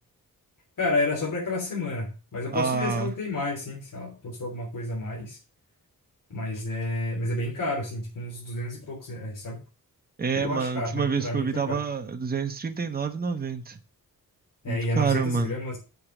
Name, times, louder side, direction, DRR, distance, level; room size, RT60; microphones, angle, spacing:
voice 1, 0.8-5.4 6.3-9.6 10.3-11.8 14.6-15.8, left 2 dB, 65° left, -4 dB, 3.3 m, -30 dB
voice 2, 2.5-3.1 10.2-13.8 14.7-15.6, right 5 dB, 25° right, 6 dB, 1.0 m, -28 dB
6.7 x 5.7 x 7.2 m, 0.32 s
wide cardioid pair, 135°, 34 cm